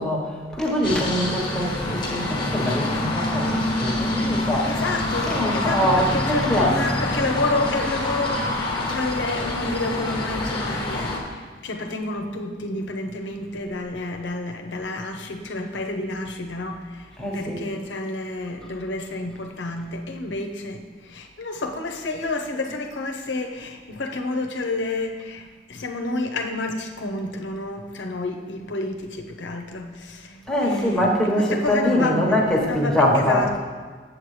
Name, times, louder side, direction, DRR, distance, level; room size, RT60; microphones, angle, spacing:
voice 1, 0.0-6.9 17.2-17.6 30.5-33.6, equal, 5° left, -4 dB, 1.2 m, -23 dB
sound 1, 0.8-11.2, left 1 dB, 25° left, 1.2 m, -26 dB
voice 2, 4.7-31.1 31.4-33.6, left 2 dB, 85° left, 4 dB, 0.8 m, -30 dB
7.7 x 7.6 x 3.2 m, 1.5 s
head